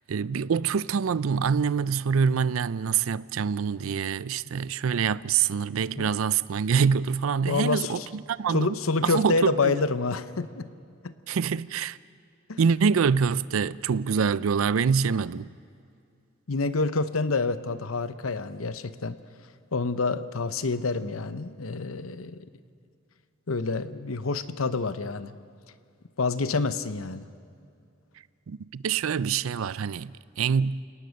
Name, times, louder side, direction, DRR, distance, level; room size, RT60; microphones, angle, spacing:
voice 1, 0.1-8.8 9.0-9.9 11.3-12.0 12.6-15.5 28.5-30.8, right 6 dB, 85° right, 0.4 m, -25 dB
voice 2, 7.5-8.1 8.5-10.7 11.0-11.1 12.5-12.6 16.5-19.2 19.7-22.4 23.5-25.3 26.2-27.2, left 3 dB, 90° left, 0.9 m, -27 dB
29.0 x 18.5 x 6.5 m
head